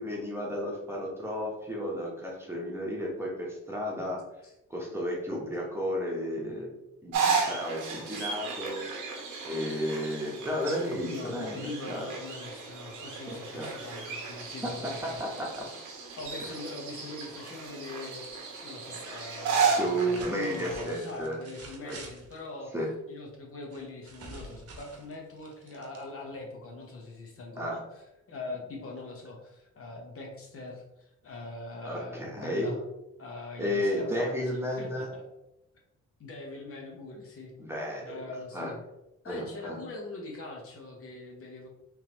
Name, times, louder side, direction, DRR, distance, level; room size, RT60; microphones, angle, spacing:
voice 1, 0.0-4.2 4.7-6.7 7.0-8.8 9.4-11.6 11.9-12.1 13.3-13.7 14.8-15.7 16.4-16.5 19.6-21.4 21.8-22.0 22.7-22.9 27.6-27.8 31.8-32.8 33.6-35.1 37.6-38.2 38.5-38.7 39.3-39.8, equal, 10° right, -3 dB, 1.0 m, -33 dB
sound 1, 7.1-20.8, right 5 dB, 80° right, 0.9 m, -34 dB
voice 2, 11.1-15.2 16.2-18.2 18.6-22.7 23.1-32.8 33.2-35.2 36.2-37.5 38.0-38.8 39.2-41.7, left 2 dB, 50° left, 0 dB, 0.9 m, -42 dB
sound 2, 14.4-18.3 18.6-19.2 19.8-22.5 23.7-26.4, right 3 dB, 50° right, 0.9 m, -50 dB
3.5 x 3.0 x 2.9 m, 0.91 s
cardioid pair, 90°, 30 cm